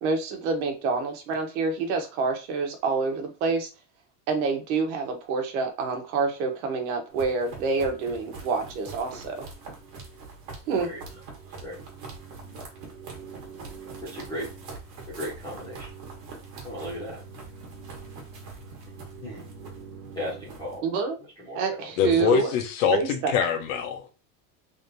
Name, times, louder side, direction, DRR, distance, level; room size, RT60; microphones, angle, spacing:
voice 1, 0.0-3.7 4.3-9.4 10.7-10.9 20.8-21.2 21.5-22.5 22.9-23.3, right 4 dB, 70° right, 1.2 m, -27 dB
sound 1, 7.1-20.8, right 4 dB, 40° right, 1.3 m, -42 dB
voice 2, 14.0-14.5 15.1-15.9 16.6-17.2 19.2-19.5 20.2-20.8 21.4-21.9, left 1 dB, 10° left, 1.0 m, -36 dB
voice 3, 22.0-24.1, left 8 dB, 60° left, 0.9 m, -24 dB
3.4 x 2.7 x 3.9 m
cardioid pair, 180°, 45 cm